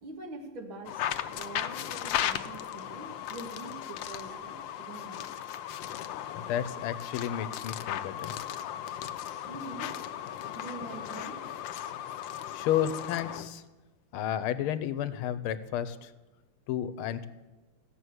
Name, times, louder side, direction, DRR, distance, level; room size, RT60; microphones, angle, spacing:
voice 1, 0.0-5.3 9.5-10.0 10.3-11.6, right 2 dB, 70° right, 2 dB, 2.6 m, -44 dB
sound 1, 0.9-13.5, left 11 dB, 75° left, 1.2 m, -36 dB
voice 2, 6.4-8.3 12.5-13.6 14.1-16.1 16.7-17.3, left 10 dB, 90° left, 13 dB, 1.5 m, -32 dB
16.0 x 6.2 x 7.9 m, 1.2 s
omnidirectional pair, 2.3 m